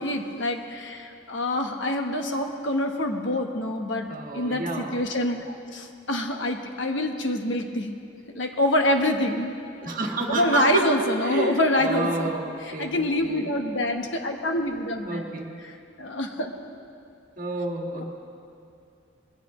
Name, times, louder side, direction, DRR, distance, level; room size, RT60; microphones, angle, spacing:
voice 1, 0.0-4.1 4.3-7.9 8.3-9.6 10.3-12.3 12.8-15.2 16.0-16.5, left 1 dB, 70° left, 4 dB, 1.2 m, -26 dB
voice 2, 4.1-5.0 9.8-10.8 11.2-13.6 15.0-15.5 17.4-18.0, right 2 dB, 45° right, 0 dB, 1.7 m, -30 dB
21.0 x 16.0 x 3.1 m, 2.5 s
head